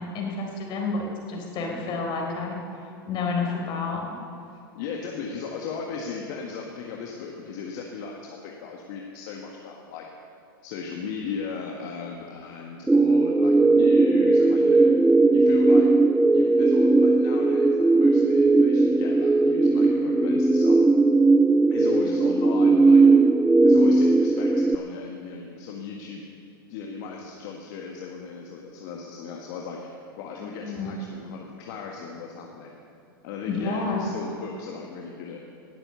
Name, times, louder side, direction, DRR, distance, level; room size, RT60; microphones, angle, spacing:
voice 1, 0.0-2.6 3.1-4.0 14.8-15.0 30.4-31.0 33.4-34.1, left 4 dB, 40° left, 1 dB, 4.1 m, -30 dB
voice 2, 4.8-10.1 10.6-14.9 15.3-15.9 16.3-20.8 21.7-23.0 23.6-26.2 26.7-32.7 33.2-35.4, left 5 dB, 55° left, 0 dB, 1.7 m, -37 dB
sound 1, 12.9-24.7, right 3 dB, 5° right, 0.3 m, -18 dB
19.0 x 8.0 x 7.0 m, 2.7 s
hypercardioid pair, 110°, 12 cm